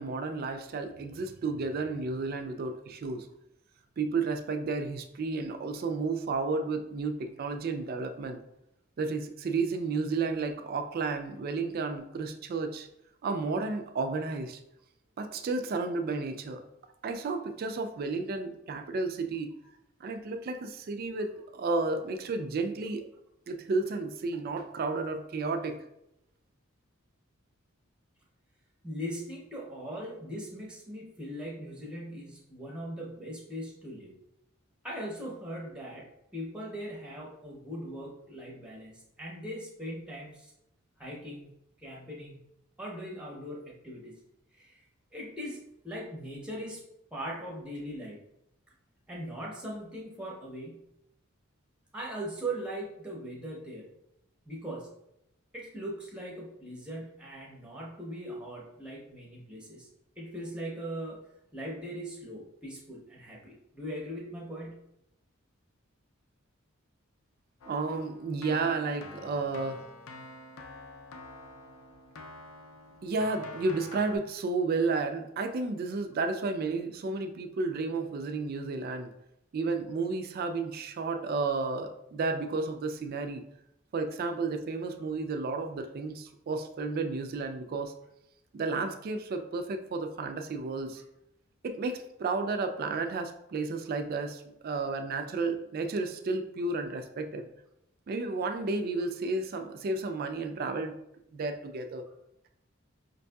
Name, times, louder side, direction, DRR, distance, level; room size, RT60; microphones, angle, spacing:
voice 1, 0.0-3.3 4.0-8.4 9.0-12.9 13.2-14.6 15.2-16.6 17.0-19.5 20.0-23.0 23.5-25.8 67.7-69.8 73.0-79.1 79.5-83.4 83.9-87.9 88.5-91.0 91.6-97.5 98.1-101.0 101.3-102.1, right 3 dB, 45° right, 6 dB, 0.3 m, -32 dB
voice 2, 28.8-34.1 34.8-40.5 41.0-41.5 41.8-42.4 42.8-44.2 44.6-44.8 45.1-46.8 47.1-48.2 49.1-50.8 51.9-53.9 54.5-54.9 55.5-59.9 60.2-61.2 61.5-64.8, right 1 dB, 5° right, -3 dB, 0.6 m, -40 dB
Keyboard (musical), 67.6-74.2, left 2 dB, 80° left, 0.5 m, -48 dB
5.2 x 2.6 x 2.2 m, 0.82 s
head